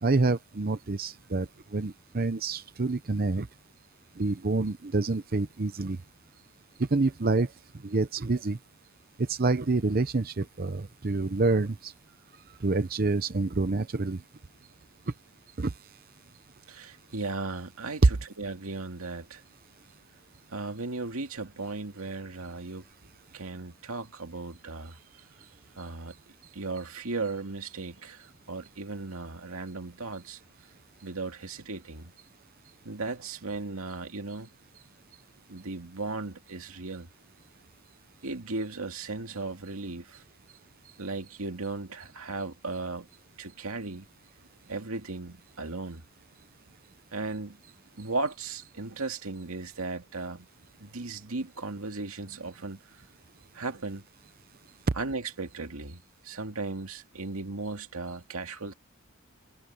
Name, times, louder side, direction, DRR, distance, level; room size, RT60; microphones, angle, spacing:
voice 1, 0.0-3.5 4.2-6.0 6.8-8.6 9.2-11.9 12.6-14.2 15.6-16.0, right 3 dB, 45° right, 0.7 m, -28 dB
voice 2, 16.7-19.4 20.5-22.8 23.3-25.5 25.8-26.2 26.5-30.4 31.0-32.1 32.8-34.5 35.5-37.1 38.2-40.2 41.0-43.1 43.4-44.1 44.7-46.0 47.1-50.5 50.8-53.0 53.5-54.0 55.0-58.7, right 3 dB, 90° right, 2.2 m, -36 dB
head